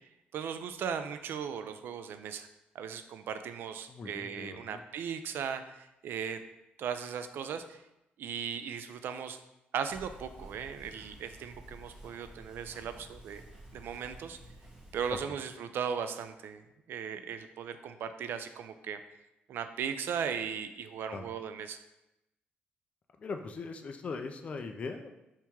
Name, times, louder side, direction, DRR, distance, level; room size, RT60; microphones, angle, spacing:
voice 1, 0.3-2.5 2.7-6.4 6.8-7.8 8.2-9.4 9.7-13.4 13.7-14.4 14.9-19.0 19.5-21.8, right 7 dB, 70° right, 10 dB, 0.3 m, -37 dB
voice 2, 3.9-4.8 15.1-15.2 21.1-21.2 23.2-25.1, left 4 dB, 35° left, 6 dB, 0.3 m, -40 dB
sound 1, 9.9-15.2, right 1 dB, 20° right, 1.0 m, -51 dB
3.5 x 2.9 x 4.4 m, 0.90 s
cardioid pair, 140°, 4 cm